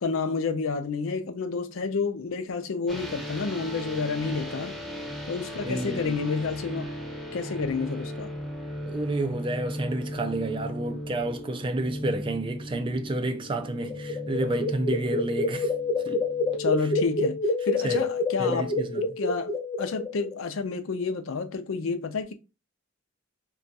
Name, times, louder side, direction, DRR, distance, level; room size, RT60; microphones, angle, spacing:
voice 1, 0.0-4.8 5.3-6.9 7.3-8.3 16.6-18.7 19.0-19.5 19.8-22.3, left 4 dB, 75° left, 0.5 m, -30 dB
sound 1, 2.9-17.1, equal, ahead, 0.9 m, -37 dB
voice 2, 5.6-6.2 8.9-15.7 16.0-16.3 16.8-16.9 17.8-18.0 18.4-19.2, right 2 dB, 25° right, 0.4 m, -30 dB
sound 2, 13.6-20.3, left 2 dB, 25° left, 0.7 m, -28 dB
2.4 x 2.3 x 3.9 m
head